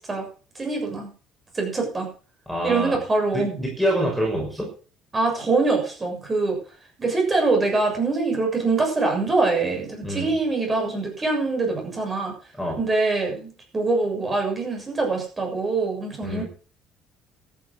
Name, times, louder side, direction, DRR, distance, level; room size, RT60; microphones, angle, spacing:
voice 1, 0.6-1.1 1.5-2.1 2.6-3.5 5.1-6.6 7.0-12.3 12.8-16.4, right 3 dB, 20° right, 1 dB, 7.1 m, -24 dB
voice 2, 2.5-3.0 3.3-4.7 10.0-10.3 12.6-12.8 16.2-16.4, equal, ahead, -3 dB, 6.2 m, -26 dB
14.0 x 10.5 x 6.3 m, 0.38 s
cardioid pair, 140°, 0 cm